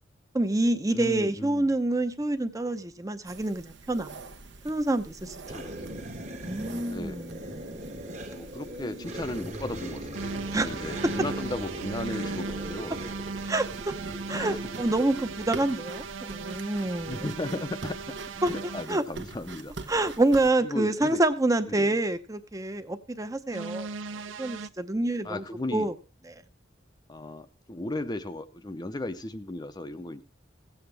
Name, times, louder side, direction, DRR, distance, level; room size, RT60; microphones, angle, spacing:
voice 1, 0.3-4.1 4.6-5.4 5.6-5.7 6.4-7.8 10.5-10.7 13.5-13.9 14.3-17.3 18.4-18.5 18.9-19.0 19.9-23.9 24.4-25.4 25.7-25.9 26.3-26.4, right 2 dB, 15° right, 0.7 m, -27 dB
voice 2, 0.9-1.8 5.5-6.0 6.9-7.2 8.3-13.0 14.3-14.7 16.8-18.2 18.5-19.7 20.6-21.2 21.7-22.0 25.2-25.9 27.1-30.2, left 2 dB, 20° left, 0.6 m, -36 dB
sound 1, 3.3-20.5, right 3 dB, 65° right, 1.0 m, -45 dB
sound 2, 5.4-15.8, right 1 dB, 35° right, 1.3 m, -39 dB
sound 3, 10.1-18.9 23.5-24.7, right 4 dB, 85° right, 0.5 m, -37 dB
16.5 x 8.0 x 3.4 m
head